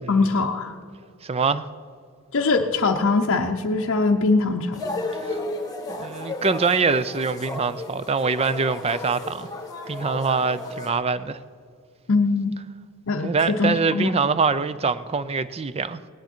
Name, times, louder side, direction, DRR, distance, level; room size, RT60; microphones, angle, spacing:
voice 1, 0.1-0.8 2.3-4.8 12.1-12.5 13.1-14.1, left 3 dB, 60° left, 0.6 m, -22 dB
voice 2, 1.2-1.7 5.2-5.4 5.9-9.5 9.9-11.4 13.2-16.0, right 4 dB, 25° right, 0.4 m, -24 dB
sound 1, 4.7-10.9, left 2 dB, 15° left, 1.5 m, -33 dB
17.5 x 10.5 x 4.4 m
head